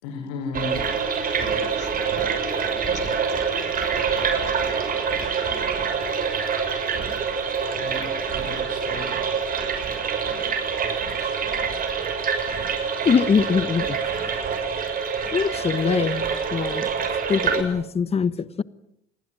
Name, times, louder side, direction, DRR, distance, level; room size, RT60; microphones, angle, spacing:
voice 1, 0.0-0.8 1.5-1.7 2.2-2.3 7.7-9.2, left 4 dB, 80° left, 5.3 m, -35 dB
sound 1, 0.5-17.6, right 6 dB, 45° right, 6.6 m, -26 dB
voice 2, 1.3-2.1 2.5-3.8 4.9-5.1, left 8 dB, 60° left, 5.0 m, -43 dB
voice 3, 13.0-14.0 15.3-16.2 16.5-16.9 17.3-18.6, left 6 dB, 30° left, 1.2 m, -22 dB
28.0 x 20.5 x 9.1 m
supercardioid pair, 80°, 20 cm